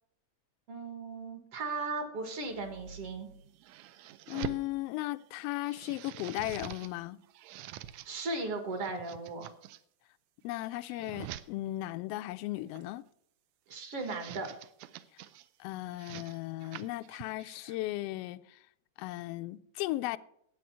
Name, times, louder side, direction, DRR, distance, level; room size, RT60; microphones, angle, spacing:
voice 1, 0.7-3.3 8.1-9.5 13.7-14.5, right 3 dB, 55° right, 2.4 m, -37 dB
sound 1, 2.4-4.7 5.2-6.9 7.2-8.1 8.7-9.8 10.4-11.5 12.5-13.0 13.7-15.5 15.9-17.8, right 11 dB, 80° right, 1.7 m, -46 dB
voice 2, 4.3-7.2 10.4-13.0 15.6-18.6 19.0-20.2, left 17 dB, 85° left, 1.4 m, -36 dB
10.5 x 8.5 x 5.5 m
omnidirectional pair, 3.3 m